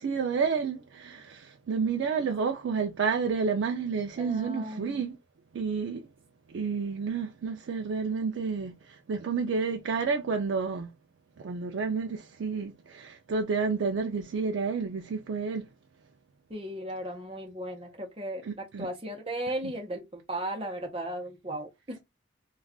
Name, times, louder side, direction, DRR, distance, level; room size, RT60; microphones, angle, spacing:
voice 1, 0.0-5.2 5.5-6.0 6.5-8.7 9.1-10.9 11.4-15.7 18.4-18.9 19.6-19.7, right 5 dB, 85° right, 0.4 m, -30 dB
voice 2, 4.2-5.0 16.5-18.5 18.8-22.0, right 1 dB, 30° right, 0.8 m, -36 dB
2.4 x 2.3 x 3.5 m
head